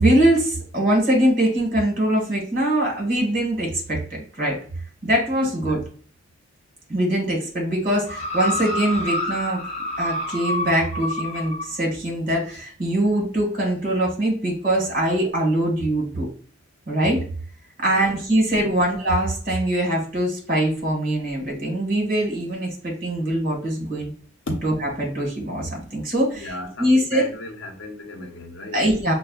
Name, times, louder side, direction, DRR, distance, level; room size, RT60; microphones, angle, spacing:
voice 1, 0.0-4.0 4.4-4.6 5.0-5.8 6.9-9.6 10.0-16.3 16.9-17.2 17.8-24.1 24.6-26.5 26.8-27.3 28.7-29.1, right 1 dB, 50° right, 1.6 m, -22 dB
sound 1, 8.1-11.7 12.5-12.6, left 1 dB, 35° left, 0.7 m, -28 dB
voice 2, 26.3-28.8, left 1 dB, 75° left, 0.8 m, -34 dB
5.8 x 2.2 x 2.3 m
head